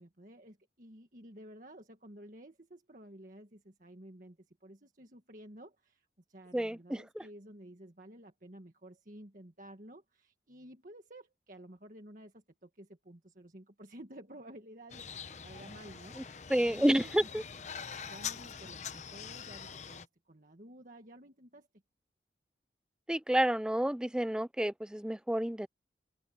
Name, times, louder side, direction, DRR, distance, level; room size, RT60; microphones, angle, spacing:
voice 1, 0.0-17.4 18.0-21.7, right 1 dB, 50° right, 1.7 m, -53 dB
voice 2, 6.5-7.2 16.5-17.4 23.1-25.7, right 1 dB, 5° right, 0.3 m, -30 dB
sound 1, 14.9-20.0, left 7 dB, 40° left, 0.8 m, -44 dB
open air
head